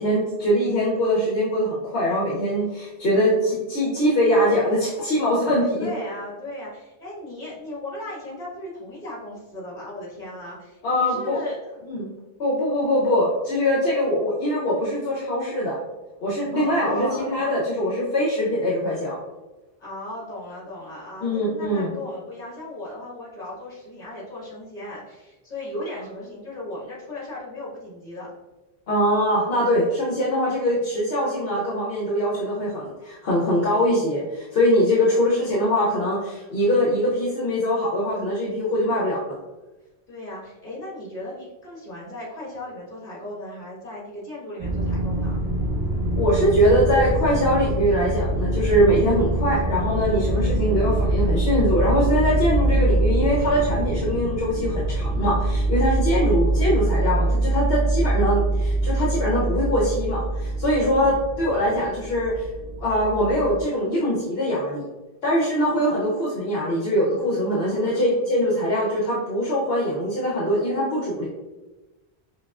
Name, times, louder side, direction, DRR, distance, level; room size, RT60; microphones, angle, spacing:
voice 1, 0.0-5.9 10.8-11.4 11.9-12.1 12.4-15.8 16.2-19.2 21.2-21.9 28.9-39.3 46.2-62.4 62.8-64.8 65.2-71.3, equal, 65° left, -5 dB, 1.0 m, -22 dB
voice 2, 5.8-11.7 16.5-17.4 19.8-28.3 35.0-35.3 40.1-45.4 50.5-51.0 56.2-56.4 60.9-61.2 65.7-66.0 67.6-68.3, left 1 dB, 40° left, -6 dB, 1.5 m, -37 dB
sound 1, 44.6-63.6, right 1 dB, 25° right, 0.6 m, -24 dB
5.5 x 2.3 x 2.3 m, 1.1 s
omnidirectional pair, 1.1 m